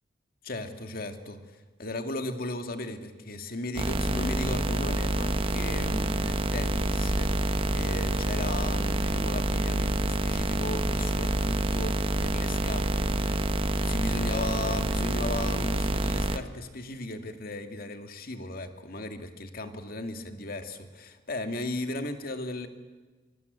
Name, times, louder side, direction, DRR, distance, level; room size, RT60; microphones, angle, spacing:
voice 1, 0.4-13.5 13.8-22.7, left 2 dB, 50° left, 7 dB, 2.3 m, -36 dB
sound 1, 3.8-16.4, right 1 dB, 30° right, 1.2 m, -27 dB
24.5 x 24.5 x 8.2 m, 1.3 s
head